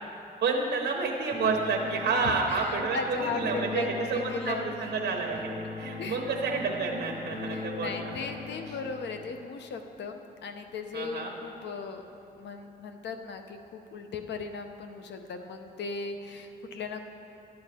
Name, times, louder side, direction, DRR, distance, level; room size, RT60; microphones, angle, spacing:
voice 1, 0.4-8.1 10.9-11.3, right 4 dB, 85° right, 0 dB, 0.9 m, -30 dB
sound 1, 1.3-9.3, left 3 dB, 35° left, 1.1 m, -39 dB
voice 2, 2.2-4.8 6.0-6.3 7.5-12.0 12.4-17.0, left 4 dB, 90° left, 6 dB, 0.8 m, -37 dB
12.0 x 8.8 x 4.2 m, 2.7 s
wide cardioid pair, 140°, 18 cm